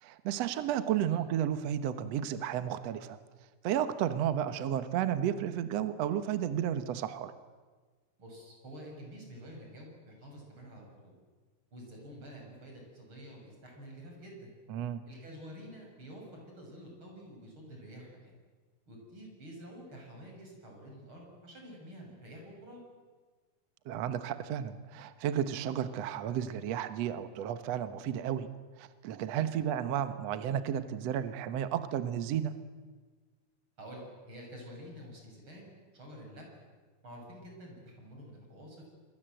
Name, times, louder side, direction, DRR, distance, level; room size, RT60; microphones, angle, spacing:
voice 1, 0.0-3.2 3.6-7.3 14.7-15.0 23.9-28.5 28.8-32.5, right 10 dB, 65° right, 11 dB, 1.8 m, -32 dB
voice 2, 8.2-11.1 11.7-14.5 15.1-18.3 18.9-22.8 33.8-36.4 37.0-38.9, equal, 35° right, 0 dB, 7.3 m, -49 dB
27.0 x 22.5 x 7.8 m, 1.4 s
omnidirectional pair, 4.2 m